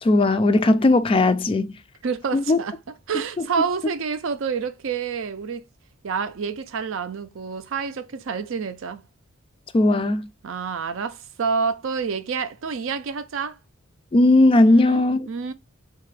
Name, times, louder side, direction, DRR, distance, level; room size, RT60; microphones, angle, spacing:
voice 1, 0.0-1.7 2.3-2.6 9.7-10.2 14.1-15.3, left 2 dB, 25° left, 0.3 m, -17 dB
voice 2, 2.0-2.8 3.1-5.6 6.0-9.0 10.4-13.6 14.6-15.5, right 5 dB, 65° right, 0.5 m, -28 dB
3.7 x 2.4 x 3.2 m
head